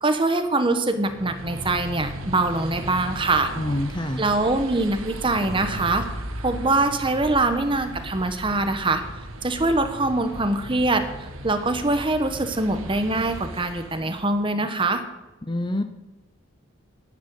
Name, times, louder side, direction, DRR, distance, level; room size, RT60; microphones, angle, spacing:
voice 1, 0.0-3.5 4.2-6.0 6.4-9.0 9.4-11.0 11.4-15.0, right 2 dB, 25° right, 8 dB, 1.1 m, -23 dB
sound 1, 0.9-14.4, right 1 dB, 85° right, 1.7 m, -36 dB
voice 2, 3.6-4.2 15.5-15.8, left 1 dB, 20° left, 9 dB, 0.7 m, -26 dB
11.0 x 9.6 x 8.3 m, 1.1 s
head